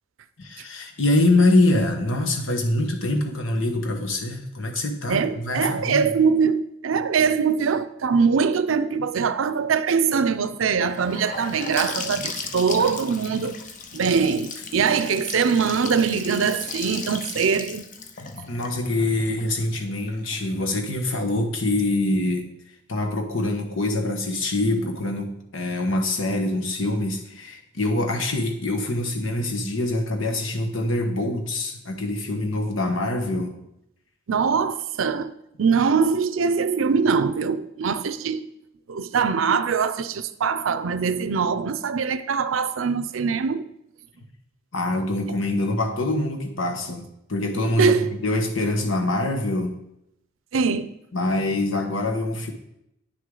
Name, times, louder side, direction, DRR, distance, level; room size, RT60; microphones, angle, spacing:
voice 1, 0.4-6.1 18.5-22.5 22.9-33.5 44.7-49.7 51.1-52.5, left 2 dB, 80° left, 1.3 m, -24 dB
voice 2, 4.8-13.6 13.9-17.9 34.3-35.3 35.6-38.5 38.9-43.7 47.8-48.2 50.5-50.9, right 6 dB, 90° right, 0.5 m, -22 dB
Gurgling / Sink (filling or washing) / Bathtub (filling or washing), 10.8-20.6, left 4 dB, 40° left, 0.7 m, -36 dB
9.6 x 6.4 x 3.9 m
head